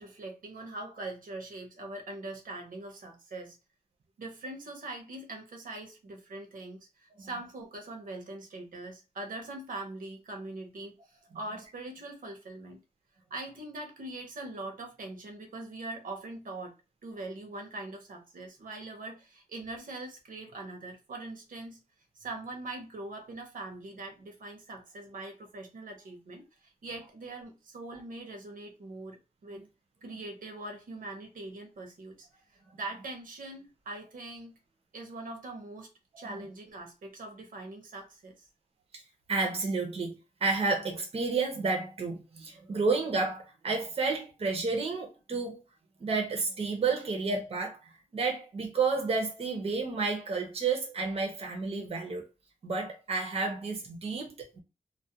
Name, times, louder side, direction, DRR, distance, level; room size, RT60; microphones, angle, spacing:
voice 1, 0.0-3.6 4.2-12.8 13.3-16.7 17.0-21.8 22.2-29.6 30.0-34.5 34.9-35.9 36.2-38.5, right 2 dB, 80° right, 0.7 m, -42 dB
voice 2, 39.3-40.1 40.4-45.6 46.0-52.2 52.6-54.6, right 4 dB, 45° right, 0.6 m, -31 dB
2.3 x 2.1 x 2.7 m
wide cardioid pair, 165°, 14 cm